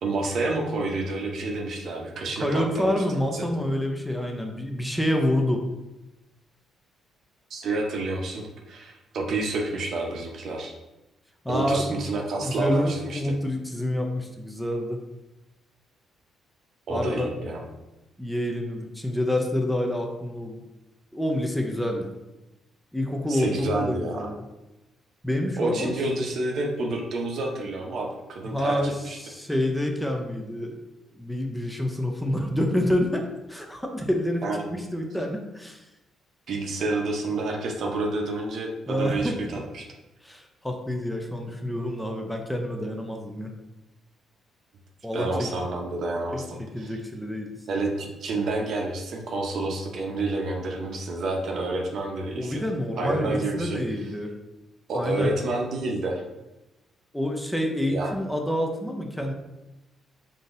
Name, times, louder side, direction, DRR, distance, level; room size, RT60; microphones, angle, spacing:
voice 1, 0.0-3.0 3.3-3.5 7.5-10.7 11.5-13.3 16.9-17.6 23.3-24.3 25.6-29.2 34.4-34.6 36.5-39.8 41.5-41.6 45.1-46.9 47.7-52.6 53.0-53.8 54.9-56.2 57.9-58.1, right 2 dB, 65° right, 1 dB, 0.6 m, -29 dB
voice 2, 2.4-5.6 11.4-12.0 12.4-15.0 16.9-17.3 18.2-20.6 21.1-22.1 22.9-24.4 25.2-25.9 28.4-30.8 31.1-34.4 34.7-35.8 38.9-39.4 40.2-43.5 45.0-45.5 46.3-46.4 46.7-47.6 52.3-54.3 54.9-55.4 57.1-59.3, left 1 dB, 5° left, 2 dB, 0.5 m, -27 dB
3.7 x 2.6 x 2.5 m, 0.99 s
cardioid pair, 90°, 0 cm